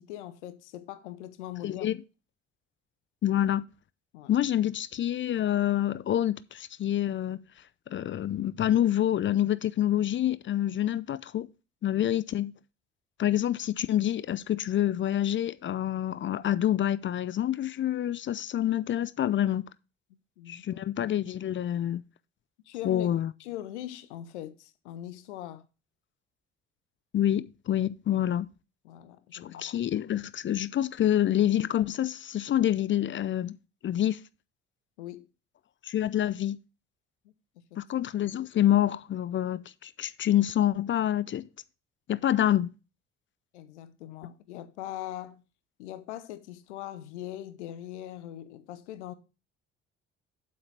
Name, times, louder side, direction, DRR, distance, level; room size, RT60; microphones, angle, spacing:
voice 1, 0.0-1.9 4.1-4.3 12.0-12.1 20.4-20.9 22.7-23.1 23.4-25.7 28.8-29.6 35.0-35.3 37.7-37.8 43.5-45.4 45.8-49.1, left 13 dB, 70° left, 0.9 m, -41 dB
voice 2, 1.6-2.0 3.2-3.6 4.3-7.4 7.9-11.5 11.8-12.5 13.2-19.7 20.5-22.0 22.8-23.3 27.1-28.5 29.4-33.6 33.8-34.2 35.8-36.6 37.8-41.4 42.1-42.7, left 11 dB, 35° left, 0.6 m, -27 dB
8.5 x 8.1 x 3.3 m
figure-of-eight pair, 50°, 35 cm